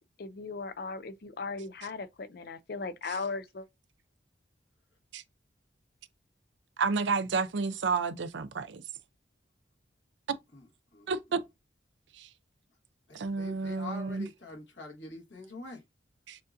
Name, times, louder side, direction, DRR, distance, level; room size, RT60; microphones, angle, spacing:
voice 1, 0.2-3.7, left 4 dB, 55° left, 0.4 m, -37 dB
voice 2, 6.8-8.8 11.1-11.4 12.2-12.3 13.1-14.3 16.3-16.4, right 4 dB, 75° right, 0.5 m, -30 dB
voice 3, 13.1-15.8, left 2 dB, 75° left, 1.4 m, -44 dB
6.5 x 2.5 x 2.6 m
head